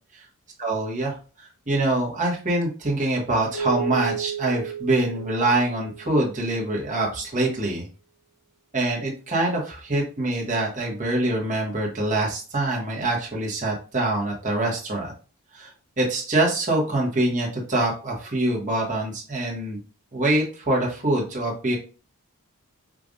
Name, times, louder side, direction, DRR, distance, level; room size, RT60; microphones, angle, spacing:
voice 1, 0.6-7.9 8.7-15.1 15.5-15.7 16.0-19.8 20.1-21.8, right 2 dB, 35° right, -2 dB, 1.1 m, -25 dB
Keyboard (musical), 3.5-6.5, right 8 dB, 65° left, 1.0 m, -33 dB
4.8 x 2.5 x 2.5 m, 0.36 s
head